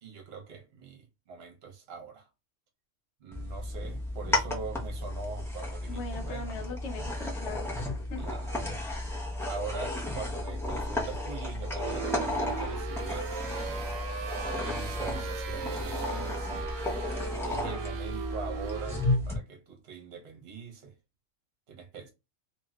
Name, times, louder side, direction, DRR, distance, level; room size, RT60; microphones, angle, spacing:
voice 1, 0.0-2.3 3.2-6.5 8.2-8.7 9.5-13.3 13.6-13.9 14.5-16.7 17.4-19.0 19.3-20.9 21.7-22.1, right 5 dB, 55° right, 1.0 m, -43 dB
sound 1, 3.3-19.4, left 1 dB, 5° left, 0.5 m, -33 dB
voice 2, 5.9-7.7 8.1-8.3, left 3 dB, 65° left, 1.0 m, -40 dB
sound 2, 11.8-19.2, right 6 dB, 80° right, 1.0 m, -38 dB
3.0 x 2.8 x 2.3 m
omnidirectional pair, 1.4 m